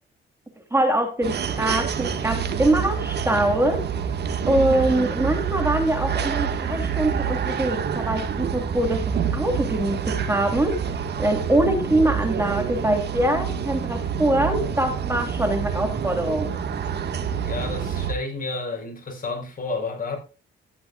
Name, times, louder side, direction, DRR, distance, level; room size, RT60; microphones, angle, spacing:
voice 1, 0.7-3.8 4.5-10.9 11.2-16.6, right 1 dB, 15° right, 3.2 m, -23 dB
sound 1, 1.2-18.1, right 7 dB, 55° right, 1.8 m, -27 dB
voice 2, 17.4-20.2, left 3 dB, 45° left, 5.1 m, -30 dB
14.0 x 11.0 x 2.4 m
cardioid pair, 90°, 20 cm